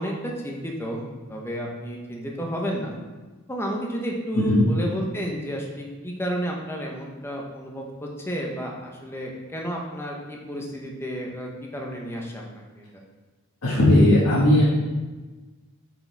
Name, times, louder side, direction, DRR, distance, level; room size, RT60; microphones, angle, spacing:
voice 1, 0.0-3.0 3.5-12.4 12.7-13.0, equal, 10° left, -1 dB, 0.8 m, -31 dB
voice 2, 4.3-4.7 13.6-14.6, left 1 dB, 85° left, -8 dB, 1.5 m, -17 dB
7.7 x 5.0 x 3.4 m, 1.3 s
head